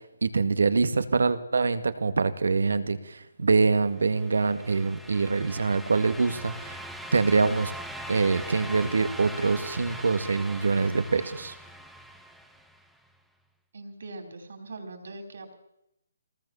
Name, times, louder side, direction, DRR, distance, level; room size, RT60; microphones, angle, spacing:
voice 1, 0.2-6.8 7.1-7.7 8.1-11.6, right 4 dB, 75° right, 11 dB, 2.0 m, -24 dB
sound 1, 4.0-12.9, right 1 dB, ahead, 0.8 m, -41 dB
voice 2, 13.7-15.5, right 2 dB, 50° right, 5 dB, 4.5 m, -41 dB
23.5 x 19.0 x 7.2 m, 0.83 s
hypercardioid pair, 180°, 0 cm